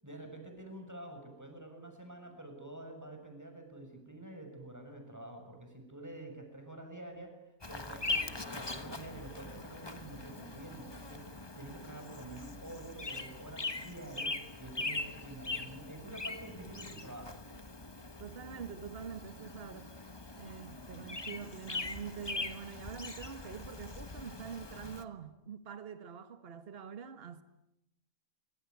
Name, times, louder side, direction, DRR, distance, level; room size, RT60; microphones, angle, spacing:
voice 1, 0.0-7.4 7.7-17.4, right 1 dB, 10° right, 6.6 m, -48 dB
Bird vocalization bird call bird song, 7.6-25.0, left 3 dB, 20° left, 1.3 m, -41 dB
voice 2, 18.2-19.9 20.4-27.4, right 7 dB, 50° right, 1.6 m, -45 dB
26.0 x 24.5 x 9.4 m
omnidirectional pair, 1.4 m